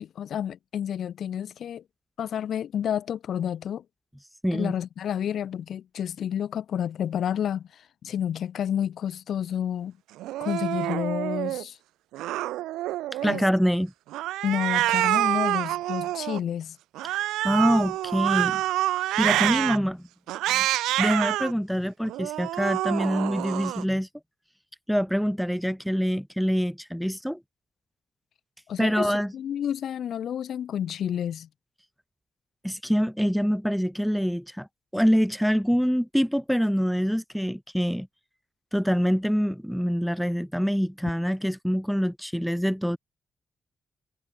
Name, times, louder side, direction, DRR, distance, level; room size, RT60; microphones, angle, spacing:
voice 1, 0.0-1.8 2.2-3.8 4.5-10.0 10.4-11.8 13.2-13.5 14.4-16.8 28.7-31.5, left 9 dB, 70° left, 1.6 m, -30 dB
voice 2, 4.4-4.7 13.2-13.9 17.1-18.6 19.2-20.1 20.5-20.7 21.0-24.1 24.9-27.4 28.8-29.3 32.6-34.7 34.9-38.1 38.7-43.0, equal, ahead, 0.4 m, -25 dB
Cat, 10.2-11.6 12.1-13.5 14.1-16.4 16.9-19.8 20.3-21.5 22.0-23.8, right 15 dB, 85° right, 0.5 m, -27 dB
hypercardioid pair, 40°, 0 cm